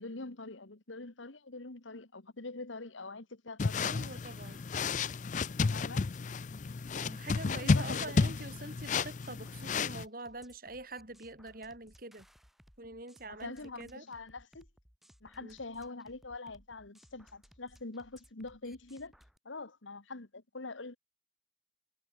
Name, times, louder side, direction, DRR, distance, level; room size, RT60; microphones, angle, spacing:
voice 1, 0.0-4.0 5.7-6.1 7.4-8.3 13.3-14.7 15.2-19.1 19.5-21.0, left 3 dB, 90° left, 1.8 m, -44 dB
sound 1, 3.6-10.0, left 4 dB, 40° left, 0.4 m, -32 dB
voice 2, 3.8-4.6 6.0-6.1 7.0-12.3 12.8-14.1 15.4-15.6, right 2 dB, 50° right, 4.6 m, -45 dB
sound 2, 4.0-19.4, equal, ahead, 7.9 m, -62 dB
head